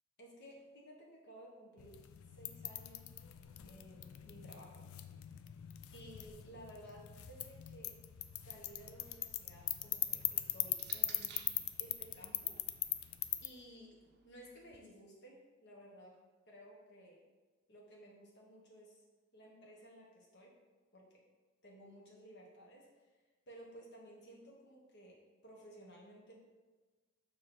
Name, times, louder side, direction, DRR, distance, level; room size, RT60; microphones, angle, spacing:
voice 1, 0.2-2.0 2.3-3.1 3.6-4.9 5.9-7.9 8.4-11.4 11.8-12.6 13.4-13.9 14.2-16.2 16.5-17.2 17.7-19.0 19.3-20.5 20.9-21.2 21.6-22.9 23.5-26.4, equal, 55° left, -2 dB, 1.3 m, -56 dB
sound 1, 1.8-13.5, left 13 dB, 75° left, 0.4 m, -41 dB
sound 2, 9.2-11.7 12.7-14.8, right 7 dB, 50° right, 0.6 m, -59 dB
7.3 x 3.1 x 6.1 m, 1.3 s
head